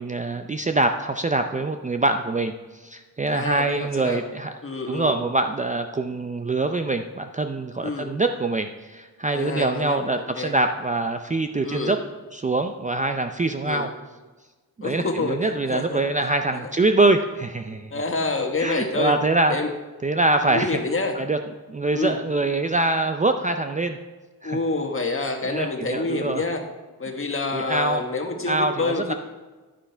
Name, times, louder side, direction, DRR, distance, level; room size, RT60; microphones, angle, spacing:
voice 1, 0.0-2.5 2.8-4.5 4.9-12.0 12.3-13.9 14.8-17.9 18.6-19.5 20.0-20.8 21.2-21.4 21.7-24.0 24.4-24.6 25.4-26.4 27.5-28.0 28.5-29.1, right 2 dB, 20° right, 7 dB, 0.4 m, -24 dB
voice 2, 3.3-4.2 4.6-5.1 7.8-8.1 9.3-10.6 11.6-12.0 13.6-13.9 14.8-16.0 16.5-16.7 17.9-19.1 19.5-19.7 20.4-21.2 21.9-22.2 24.4-26.6 27.0-29.1, left 3 dB, 35° left, 4 dB, 1.4 m, -27 dB
10.0 x 10.0 x 3.4 m, 1.3 s
cardioid pair, 85°, 37 cm